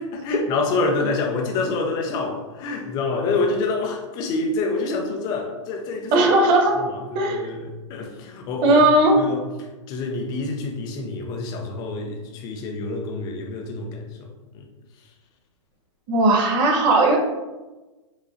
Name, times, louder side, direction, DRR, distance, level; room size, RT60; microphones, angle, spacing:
voice 1, 0.0-6.3 6.7-8.8 9.2-14.7, left 3 dB, 25° left, 2 dB, 0.7 m, -27 dB
voice 2, 6.1-6.7 7.1-7.5 8.6-9.2 16.1-17.2, right 2 dB, 30° right, 1 dB, 0.8 m, -17 dB
5.0 x 3.7 x 2.7 m, 1.1 s
hypercardioid pair, 150°, 16 cm